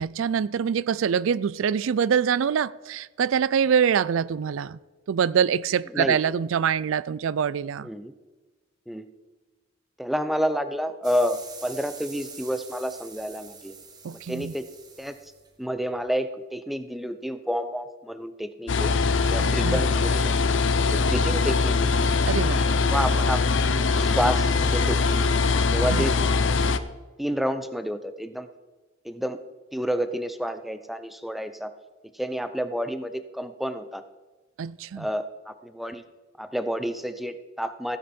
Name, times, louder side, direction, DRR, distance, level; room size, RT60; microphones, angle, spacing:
voice 1, 0.0-4.8 5.1-7.9 14.0-14.5 19.4-19.8 22.3-22.7 26.0-26.1 34.6-35.1, right 7 dB, 75° right, 0.4 m, -25 dB
voice 2, 10.0-13.8 14.1-14.6 15.0-15.1 15.6-19.0 19.3-20.3 20.9-21.9 22.9-23.6 23.9-25.0 25.7-26.2 26.5-26.6 27.2-28.5 29.0-29.4 29.7-31.7 32.1-34.0 35.0-36.0 36.4-38.0, equal, ahead, 0.6 m, -29 dB
sound 1, 11.0-16.0, right 5 dB, 20° right, 1.3 m, -45 dB
sound 2, 18.7-26.8, left 4 dB, 65° left, 0.7 m, -22 dB
16.0 x 9.8 x 4.3 m
head